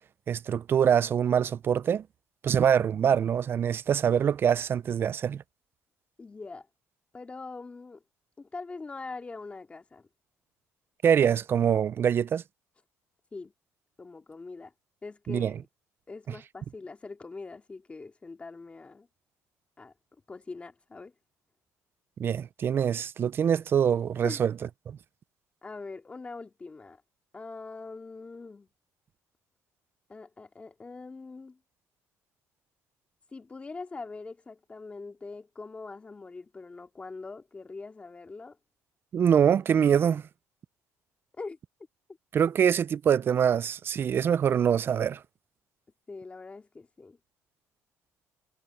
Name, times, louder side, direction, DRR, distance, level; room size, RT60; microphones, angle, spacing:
voice 1, 0.3-2.0 2.4-5.4 11.0-12.4 15.3-15.5 22.2-24.5 24.9-25.0 39.1-40.2 42.3-45.2, right 8 dB, 45° right, 0.4 m, -24 dB
voice 2, 6.2-6.7 7.1-8.0 8.4-10.1 13.3-13.5 14.0-14.7 15.0-15.6 16.1-19.1 19.8-19.9 20.3-21.1 24.2-24.4 25.6-27.0 27.3-28.7 30.1-31.6 33.3-38.6 41.4-41.6 46.1-47.2, left 3 dB, 20° left, 2.5 m, -42 dB
cardioid pair, 100°, 5 cm